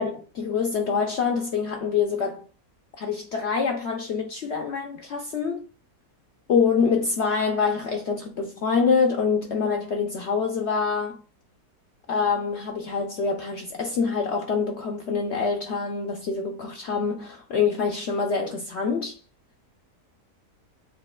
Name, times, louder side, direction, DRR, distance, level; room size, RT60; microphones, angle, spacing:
voice 1, 0.0-2.4 3.0-5.6 6.5-11.2 12.1-19.2, left 5 dB, 65° left, 0.6 m, -25 dB
7.3 x 2.7 x 2.3 m
omnidirectional pair, 1.7 m